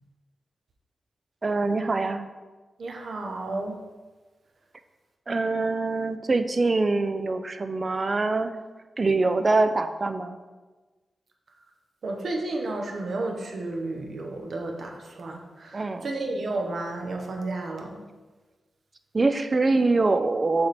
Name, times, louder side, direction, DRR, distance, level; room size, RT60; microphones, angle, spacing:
voice 1, 1.4-2.2 5.3-8.6 9.0-10.4 15.7-16.1 19.1-20.7, right 3 dB, 30° right, 10 dB, 0.3 m, -24 dB
voice 2, 2.8-3.8 12.0-18.0, right 2 dB, 60° right, 2 dB, 0.8 m, -32 dB
6.9 x 3.3 x 4.1 m, 1.3 s
wide cardioid pair, 135°, 0 cm